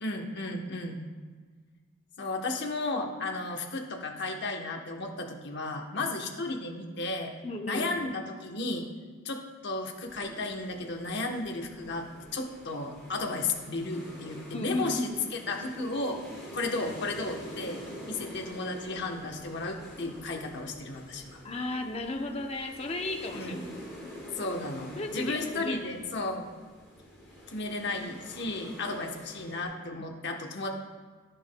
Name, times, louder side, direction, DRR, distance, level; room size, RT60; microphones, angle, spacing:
voice 1, 0.0-1.0 2.2-7.3 7.7-8.9 9.2-12.1 12.3-16.2 16.5-17.8 18.1-21.4 23.3-23.6 24.4-26.5 27.5-30.7, left 2 dB, 50° left, 2 dB, 0.9 m, -34 dB
voice 2, 7.4-8.2 14.5-15.5 21.4-23.6 25.0-25.8, left 2 dB, 25° left, 4 dB, 0.6 m, -34 dB
sound 1, 9.9-29.7, equal, ahead, 2.9 m, -47 dB
12.0 x 9.8 x 2.2 m, 1.5 s
head